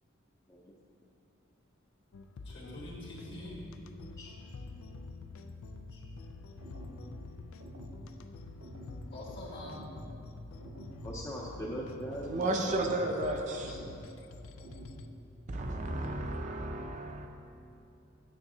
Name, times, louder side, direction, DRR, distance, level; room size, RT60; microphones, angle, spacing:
sound 1, 2.1-15.1, left 3 dB, 90° left, 0.4 m, -47 dB
voice 1, 2.4-3.6 5.9-6.0 9.1-9.9 12.5-13.1, left 1 dB, 60° left, -5 dB, 1.7 m, -45 dB
sound 2, 6.6-7.0 7.6-8.0 8.6-9.0 9.6-10.0 10.6-11.0 11.6-12.0 12.6-13.0 13.6-14.0 14.6-15.0, right 1 dB, 70° right, 1.1 m, -49 dB
voice 2, 11.0-13.0 13.5-14.0, equal, 15° left, -4 dB, 0.5 m, -41 dB
voice 3, 12.3-13.7 15.5-17.3, right 2 dB, 35° right, 3 dB, 0.5 m, -33 dB
9.5 x 7.1 x 2.7 m, 2.8 s
head